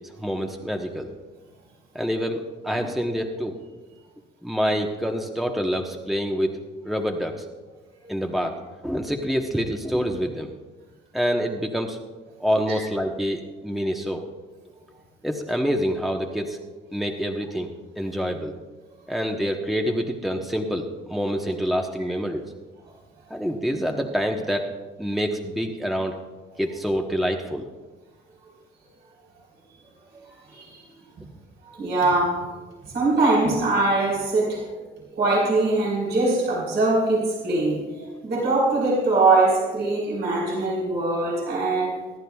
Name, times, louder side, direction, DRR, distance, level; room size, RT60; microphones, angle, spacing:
voice 1, 0.2-1.1 1.9-3.5 4.4-6.5 6.8-7.3 8.1-8.6 8.8-10.5 11.1-12.0 12.4-14.2 15.2-16.6 16.9-18.5 19.1-22.4 23.3-24.7 25.0-26.2 26.6-27.7, equal, ahead, 2 dB, 1.1 m, -26 dB
voice 2, 30.5-30.8 31.2-31.3 31.7-32.5 32.8-34.7 35.2-42.0, right 2 dB, 60° right, -5 dB, 4.0 m, -22 dB
24.5 x 10.5 x 2.4 m, 1.3 s
cardioid pair, 90°, 20 cm